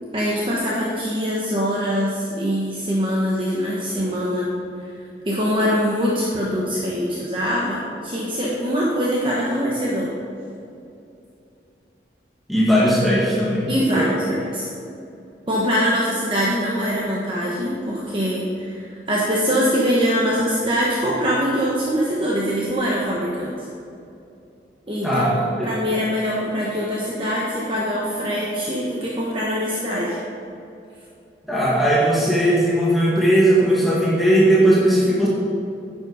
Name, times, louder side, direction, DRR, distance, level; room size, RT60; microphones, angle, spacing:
voice 1, 0.1-4.5 5.3-10.1 13.7-14.7 15.5-23.5 24.9-30.2, equal, 30° right, -5 dB, 1.2 m, -23 dB
voice 2, 12.5-14.2 25.0-25.4 31.5-35.3, right 1 dB, ahead, -7 dB, 1.8 m, -18 dB
10.5 x 7.5 x 5.0 m, 2.7 s
head